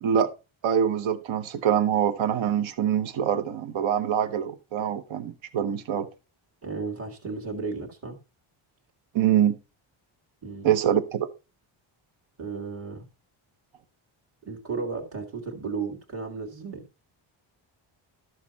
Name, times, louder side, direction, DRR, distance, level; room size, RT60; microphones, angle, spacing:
voice 1, 0.6-6.1 9.1-9.6 10.6-11.3, right 9 dB, 65° right, 1.0 m, -24 dB
voice 2, 6.6-8.2 10.4-11.0 12.4-13.1 14.4-16.9, right 4 dB, 30° right, 1.8 m, -34 dB
13.0 x 6.7 x 4.0 m
wide cardioid pair, 160°, 49 cm